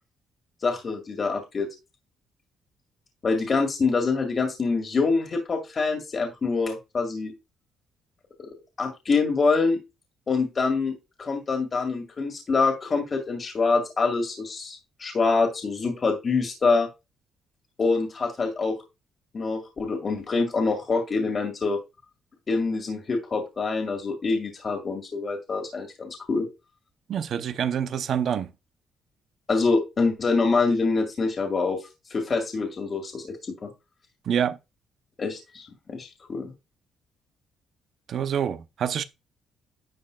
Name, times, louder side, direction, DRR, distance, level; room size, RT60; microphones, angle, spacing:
voice 1, 0.6-1.7 3.2-7.3 8.4-8.5 8.8-9.8 10.3-16.9 17.8-18.8 19.3-21.8 22.5-26.5 29.5-33.4 33.6-33.7 35.2-36.5, left 4 dB, 40° left, 2.1 m, -25 dB
voice 2, 27.1-28.5 34.2-34.6 38.1-39.0, right 8 dB, 65° right, 0.7 m, -26 dB
11.0 x 5.4 x 2.4 m
cardioid pair, 90°, 0 cm